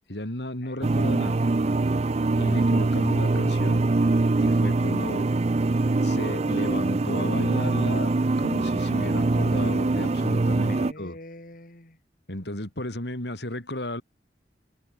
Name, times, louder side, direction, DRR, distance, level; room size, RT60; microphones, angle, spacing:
voice 1, 0.1-1.4 2.4-3.9 4.4-5.3 5.9-8.1 8.4-11.2 12.3-14.0, left 1 dB, 70° left, 4.4 m, -34 dB
sound 1, 0.8-10.9, right 2 dB, 40° right, 0.5 m, -23 dB
voice 2, 10.7-12.0, left 1 dB, 50° left, 4.6 m, -44 dB
head